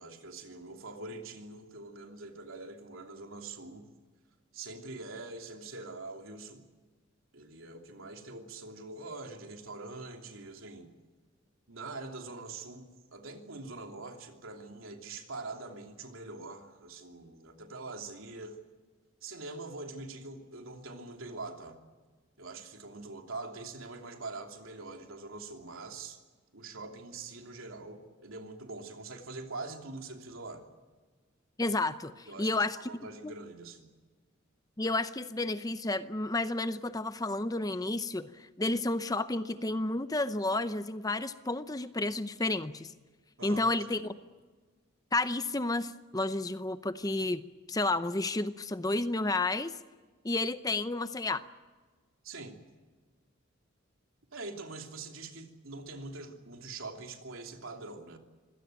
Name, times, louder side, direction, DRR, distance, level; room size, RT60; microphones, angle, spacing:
voice 1, 0.0-3.9 4.5-6.6 7.3-10.9 11.7-18.6 19.2-21.8 22.4-26.2 26.5-30.6 32.3-33.9 43.4-44.0 52.2-52.6 54.3-58.2, right 3 dB, 80° right, 3 dB, 3.0 m, -44 dB
voice 2, 31.6-32.8 33.2-33.3 34.8-38.3 38.6-42.9 43.4-44.0 45.1-47.4 47.7-49.7 50.2-51.4, left 2 dB, 20° left, 12 dB, 0.7 m, -31 dB
25.5 x 17.5 x 9.2 m, 1.4 s
head